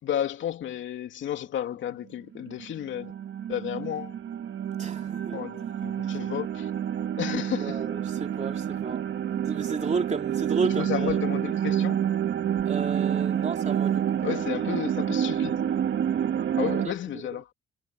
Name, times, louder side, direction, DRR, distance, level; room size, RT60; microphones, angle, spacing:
voice 1, 0.0-3.1 3.5-4.2 5.3-6.7 7.2-7.9 10.6-12.0 14.2-15.8 16.6-17.5, left 10 dB, 75° left, 2.9 m, -32 dB
sound 1, 2.4-16.9, right 9 dB, 65° right, 2.4 m, -28 dB
voice 2, 4.8-5.4 7.6-9.0 9.3-11.1 12.6-14.2 16.8-16.9, right 5 dB, 35° right, 3.2 m, -32 dB
cardioid pair, 90°, 20 cm